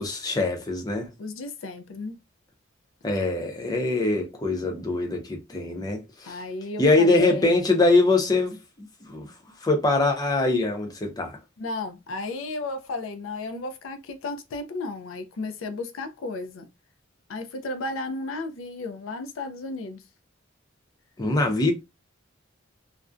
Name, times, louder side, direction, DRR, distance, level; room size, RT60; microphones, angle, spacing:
voice 1, 0.0-1.1 3.0-6.4 6.8-8.6 9.0-9.3 9.6-11.4 21.2-21.7, left 2 dB, 20° left, 0.5 m, -23 dB
voice 2, 1.2-2.2 6.2-7.6 11.6-16.7 17.3-20.0, left 2 dB, 80° left, 0.4 m, -34 dB
2.4 x 2.1 x 2.4 m
head